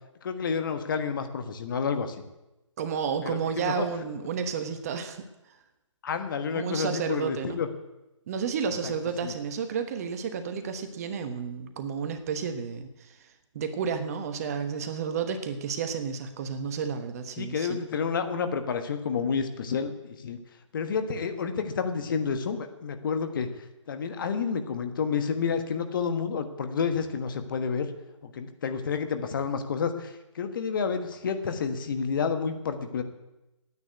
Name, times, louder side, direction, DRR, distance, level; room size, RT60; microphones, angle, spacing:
voice 1, 0.2-2.2 3.2-3.8 6.0-7.7 8.8-8.9 9.2-9.3 17.4-20.4 20.7-23.5 23.9-27.9 28.2-33.0, left 6 dB, 40° left, 8 dB, 1.3 m, -30 dB
voice 2, 2.8-5.3 6.5-7.6 8.3-13.2 13.5-17.8, right 6 dB, 30° right, 8 dB, 1.1 m, -31 dB
9.7 x 9.0 x 9.3 m, 0.99 s
figure-of-eight pair, 150°, 16 cm